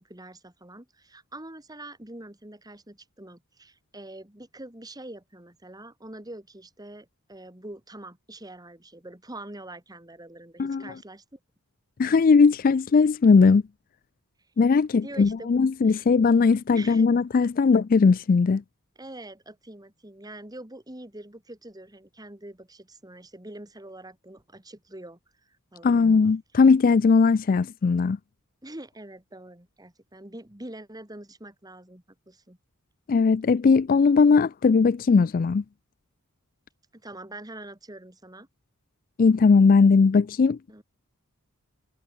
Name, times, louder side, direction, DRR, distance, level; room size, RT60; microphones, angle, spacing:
voice 1, 0.0-11.4 14.9-15.5 15.8-16.0 16.7-17.1 19.0-26.0 28.6-32.6 36.9-38.5 40.7-40.8, right 1 dB, 15° right, 2.5 m, -44 dB
voice 2, 12.0-13.6 14.6-18.6 25.8-28.2 33.1-35.6 39.2-40.6, left 4 dB, 40° left, 0.3 m, -19 dB
head